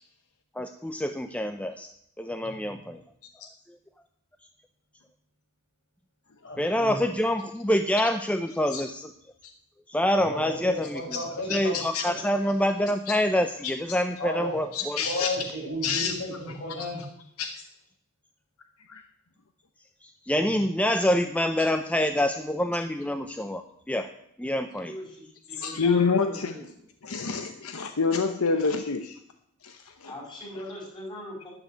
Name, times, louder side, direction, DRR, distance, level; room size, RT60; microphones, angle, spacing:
voice 1, 0.6-1.9 2.2-3.0 6.6-9.1 9.9-11.0 11.5-15.0 20.0-24.1 24.4-24.9, left 1 dB, 5° left, 7 dB, 0.5 m, -26 dB
voice 2, 2.4-2.7 6.4-7.0 10.2-11.8 12.1-12.3 14.2-14.6 15.0-17.0, left 1 dB, 55° left, -3 dB, 6.9 m, -34 dB
voice 3, 14.7-15.3 15.8-16.1 17.4-17.5 18.9-19.0 25.5-26.5 27.0-29.2 29.6-30.1, left 5 dB, 75° left, 7 dB, 0.9 m, -27 dB
voice 4, 24.8-26.7 30.1-31.5, left 1 dB, 20° left, -2 dB, 5.6 m, -41 dB
12.5 x 7.1 x 9.2 m, 0.72 s
head